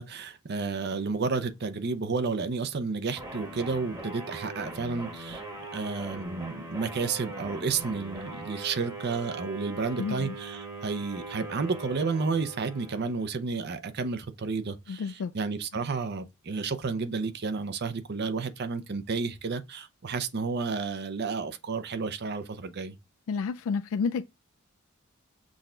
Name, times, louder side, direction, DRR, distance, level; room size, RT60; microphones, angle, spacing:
voice 1, 0.0-5.4 5.7-23.0, right 4 dB, 50° right, 0.6 m, -31 dB
sound 1, 3.2-13.4, right 2 dB, 15° right, 1.0 m, -41 dB
voice 2, 10.0-10.3 14.9-15.3 23.3-24.2, left 5 dB, 70° left, 0.3 m, -30 dB
6.2 x 2.3 x 3.7 m
head